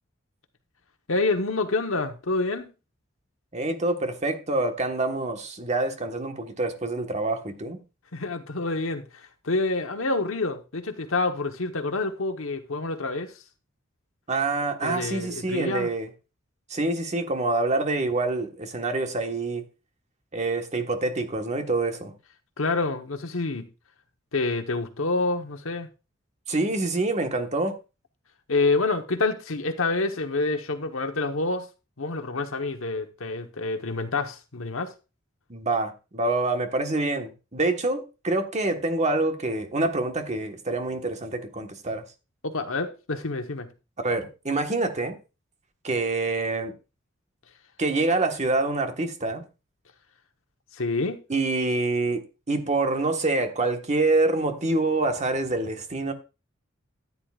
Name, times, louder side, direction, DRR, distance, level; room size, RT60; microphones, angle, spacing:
voice 1, 1.1-2.7 8.1-13.3 14.8-15.9 22.6-23.7 24.3-25.9 28.5-31.7 32.0-34.9 42.4-43.7 50.8-51.2, left 3 dB, 90° left, 1.2 m, -27 dB
voice 2, 3.5-7.8 14.3-16.1 16.7-19.6 20.3-22.1 26.5-27.7 35.5-42.0 44.0-45.2 45.8-46.7 47.8-49.4 51.3-56.1, right 2 dB, 35° right, 1.4 m, -26 dB
13.5 x 9.7 x 2.5 m
head